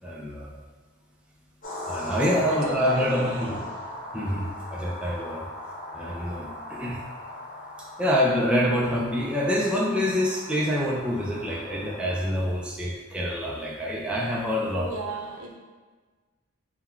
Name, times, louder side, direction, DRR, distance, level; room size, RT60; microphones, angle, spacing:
voice 1, 0.0-0.6 1.9-3.6 4.1-5.5 5.9-7.0 8.0-14.9, equal, 5° right, -4 dB, 0.4 m, -26 dB
sound 1, 1.6-12.4, left 1 dB, 40° left, 1.0 m, -38 dB
voice 2, 2.5-3.7 14.7-15.5, right 3 dB, 70° right, 0 dB, 0.6 m, -35 dB
3.8 x 2.2 x 4.3 m, 1.4 s
head